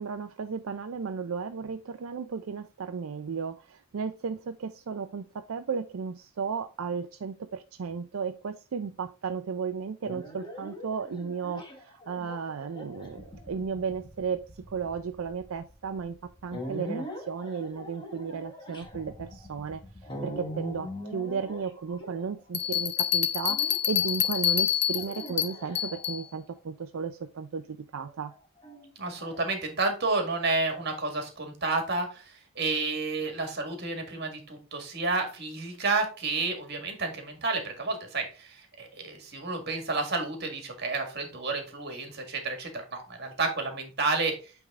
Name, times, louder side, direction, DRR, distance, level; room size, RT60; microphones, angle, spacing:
voice 1, 0.0-19.8 20.2-27.7 27.9-28.3, right 6 dB, 80° right, 0.5 m, -34 dB
sound 1, 10.0-22.7 23.5-24.1 24.9-26.4 28.0-29.4, equal, 20° left, 1.5 m, -42 dB
sound 2, 22.5-26.2, left 10 dB, 55° left, 0.8 m, -27 dB
voice 2, 29.0-44.5, right 3 dB, 50° right, 1.8 m, -30 dB
8.5 x 3.6 x 3.6 m
head